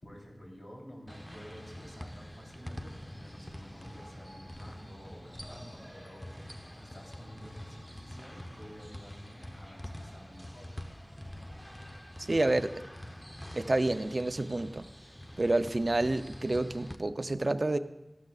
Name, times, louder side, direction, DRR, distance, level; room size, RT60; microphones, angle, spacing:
voice 1, 0.0-10.7, equal, 65° left, -2 dB, 3.6 m, -51 dB
sound 1, 1.1-17.0, equal, 10° left, 0.8 m, -46 dB
voice 2, 12.2-12.7 13.6-14.8 15.4-17.8, right 2 dB, 55° right, 10 dB, 0.6 m, -29 dB
15.0 x 12.0 x 2.4 m, 0.96 s
wide cardioid pair, 50°, 0 cm